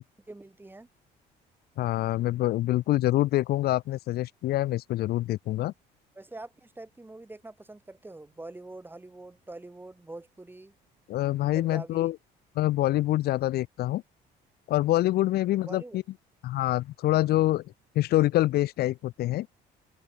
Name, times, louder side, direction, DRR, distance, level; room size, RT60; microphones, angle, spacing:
voice 1, 0.3-0.9 6.1-10.7 11.5-12.1 15.5-16.0, right 2 dB, 10° right, 6.6 m, -44 dB
voice 2, 1.8-5.7 11.1-12.2 12.6-14.0 14.7-16.0 16.4-17.6 18.0-19.5, left 15 dB, 70° left, 0.8 m, -26 dB
open air
cardioid pair, 110°, 17 cm